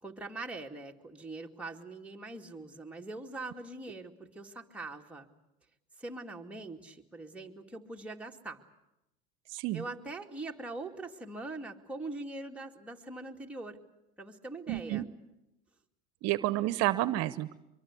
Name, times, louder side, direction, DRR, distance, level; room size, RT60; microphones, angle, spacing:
voice 1, 0.0-5.3 6.0-8.6 9.7-13.8 14.2-15.0, right 2 dB, 5° right, 0 dB, 2.4 m, -42 dB
voice 2, 9.5-9.8 14.7-15.0 16.2-17.6, right 16 dB, 60° right, 15 dB, 1.0 m, -30 dB
24.0 x 23.0 x 8.5 m, 0.91 s
supercardioid pair, 100°, 29 cm